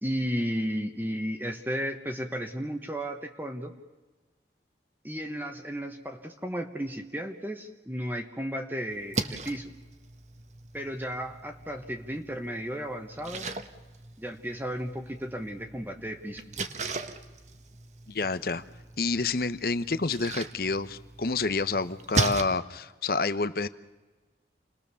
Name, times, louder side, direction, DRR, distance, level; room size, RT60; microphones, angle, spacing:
voice 1, 0.0-3.7 5.0-9.7 10.7-13.5 14.2-16.4, equal, 10° right, 4 dB, 1.3 m, -34 dB
Splash splatter, 8.9-22.4, right 3 dB, 40° right, 1.3 m, -37 dB
voice 2, 18.1-18.6 19.0-23.7, left 3 dB, 55° left, 13 dB, 0.9 m, -28 dB
29.0 x 20.5 x 7.0 m, 1.3 s
head